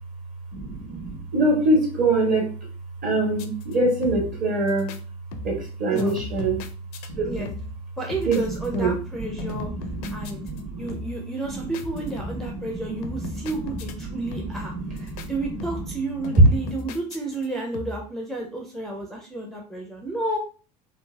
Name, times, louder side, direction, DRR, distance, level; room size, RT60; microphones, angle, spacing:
voice 1, 0.5-2.5 3.0-4.9 5.4-6.7 7.1-7.5 8.2-9.0 9.2-11.0 11.5-11.7 11.9-13.5 14.0-15.3 16.4-16.7, right 2 dB, 40° right, -1 dB, 1.3 m, -24 dB
sound 1, 3.3-3.7 4.0-4.4 4.7-5.0 5.3-5.7 5.9-7.1 7.4-7.8 8.1-9.1 9.4-10.6 10.9-11.3 11.7-12.5 13.0-14.0 14.3-14.7 15.0-15.3 15.6-16.0 16.2-17.5 17.7-18.1, left 3 dB, 65° left, 0.4 m, -37 dB
voice 2, 8.0-9.7 10.1-10.4 10.8-20.4, right 2 dB, ahead, 0 dB, 0.5 m, -31 dB
3.1 x 2.5 x 2.2 m, 0.38 s
hypercardioid pair, 75°, 21 cm